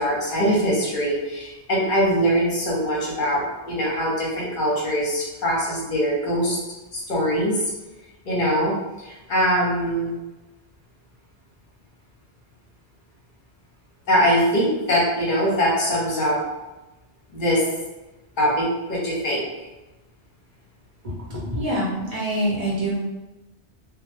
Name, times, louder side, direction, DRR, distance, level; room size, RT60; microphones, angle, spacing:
voice 1, 0.0-6.6 6.9-7.6 8.2-10.1 14.1-16.4 17.3-17.6 18.4-19.5, equal, 50° left, -4 dB, 0.7 m, -22 dB
voice 2, 21.3-22.9, right 1 dB, 40° right, -7 dB, 0.6 m, -25 dB
2.1 x 2.0 x 2.9 m, 1.1 s
omnidirectional pair, 1.2 m